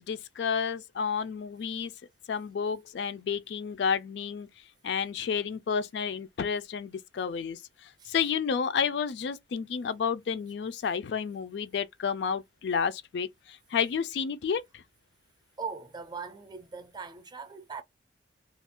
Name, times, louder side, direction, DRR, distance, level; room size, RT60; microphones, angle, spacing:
voice 1, 0.0-1.9 2.3-4.5 4.8-7.6 8.1-13.3 13.7-14.6, left 6 dB, 65° left, 0.3 m, -30 dB
voice 2, 15.6-17.8, right 5 dB, 25° right, 0.5 m, -40 dB
2.4 x 2.2 x 3.5 m
head